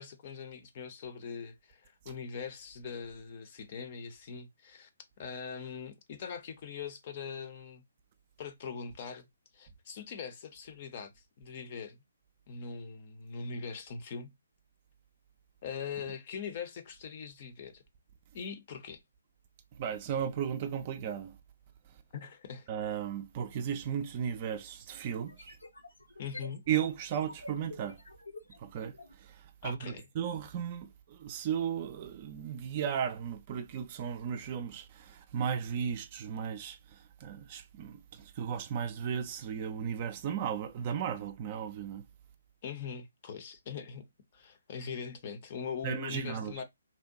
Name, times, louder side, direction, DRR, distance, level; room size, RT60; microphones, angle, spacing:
voice 1, 0.0-4.9 5.2-7.8 8.4-9.3 9.5-12.0 12.5-14.3 15.6-17.8 18.3-19.0 22.1-22.7 26.2-26.6 29.6-30.1 42.6-44.1 44.3-46.6, left 6 dB, 40° left, 0.6 m, -42 dB
voice 2, 19.8-21.3 22.7-25.6 26.7-28.0 28.6-28.9 29.2-42.0 45.8-46.5, right 8 dB, 35° right, 0.4 m, -35 dB
sound 1, 25.2-29.2, left 2 dB, 85° left, 0.7 m, -49 dB
2.6 x 2.1 x 2.6 m
figure-of-eight pair, 135°, 0 cm